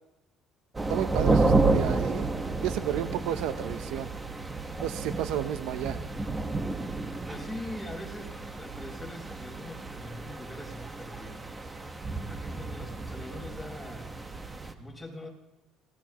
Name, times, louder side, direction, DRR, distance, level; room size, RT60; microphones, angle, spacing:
sound 1, 0.7-14.7, right 3 dB, 15° right, 1.4 m, -31 dB
voice 1, 0.9-2.3 2.6-4.1 4.8-6.0, right 11 dB, 80° right, 10 dB, 0.9 m, -32 dB
voice 2, 7.3-11.5 11.8-15.3, left 1 dB, 10° left, -1 dB, 5.0 m, -43 dB
26.5 x 17.5 x 3.1 m, 0.96 s
cardioid pair, 115°, 0 cm